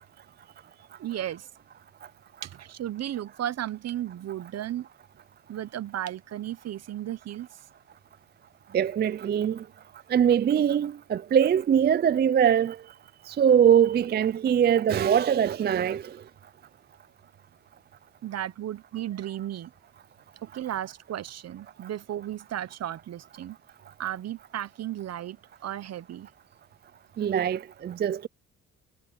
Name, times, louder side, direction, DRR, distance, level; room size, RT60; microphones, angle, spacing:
voice 1, 1.0-1.5 2.4-4.9 5.5-7.5 18.2-19.7 20.4-23.6 24.0-26.3, right 11 dB, 55° right, 0.9 m, -34 dB
voice 2, 8.7-9.6 10.1-12.8 13.3-16.0 27.2-28.3, right 8 dB, 35° right, 0.4 m, -22 dB
cardioid pair, 90°, 30 cm